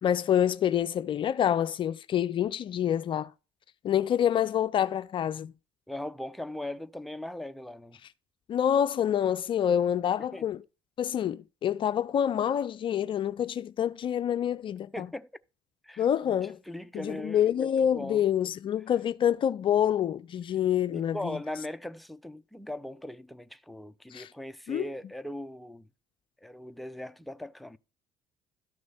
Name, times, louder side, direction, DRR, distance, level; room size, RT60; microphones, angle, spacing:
voice 1, 0.0-3.3 3.8-5.5 8.5-10.6 11.0-15.1 16.0-16.6 16.9-21.4 24.1-24.3 24.7-24.8, left 9 dB, 45° left, 0.5 m, -27 dB
voice 2, 5.9-8.0 10.3-10.5 14.9-15.3 15.8-16.0 16.4-18.2 20.9-25.9 26.4-27.8, left 1 dB, ahead, 0.7 m, -39 dB
12.5 x 6.2 x 4.2 m
hypercardioid pair, 60°, 12 cm